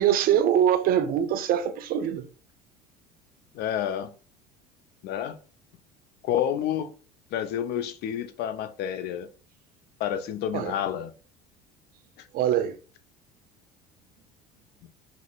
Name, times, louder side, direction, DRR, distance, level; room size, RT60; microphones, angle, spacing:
voice 1, 0.0-2.2 10.5-10.8 12.3-12.8, right 10 dB, 45° right, 0.5 m, -23 dB
voice 2, 3.5-4.1 5.0-5.4 6.2-6.9 7.3-9.3 10.0-11.1 12.2-12.3 14.8-14.9, left 10 dB, 55° left, 0.5 m, -29 dB
4.9 x 2.0 x 2.3 m
hypercardioid pair, 70°, 20 cm